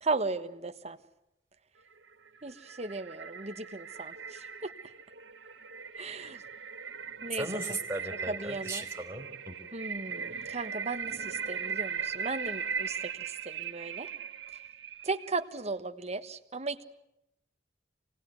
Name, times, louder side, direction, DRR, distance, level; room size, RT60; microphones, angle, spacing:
voice 1, 0.0-1.0 2.4-4.7 6.0-6.4 7.2-7.8 8.3-8.8 9.7-14.1 15.0-16.8, right 3 dB, 35° right, 8 dB, 1.3 m, -36 dB
sound 1, 2.0-15.4, right 6 dB, 80° right, 1.2 m, -39 dB
voice 2, 7.4-9.5, right 2 dB, 15° right, 2 dB, 3.8 m, -37 dB
26.0 x 19.5 x 9.5 m, 0.85 s
head